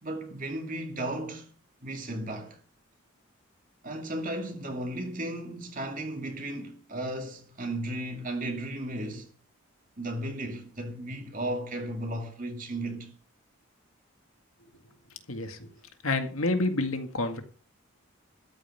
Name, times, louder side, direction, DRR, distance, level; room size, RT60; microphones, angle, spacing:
voice 1, 0.0-1.5 1.8-2.6 3.8-9.3 10.0-13.1, right 1 dB, 40° right, 2.3 m, -35 dB
voice 2, 15.3-15.6 16.0-17.4, left 2 dB, 75° left, 1.9 m, -28 dB
13.5 x 5.5 x 9.5 m
head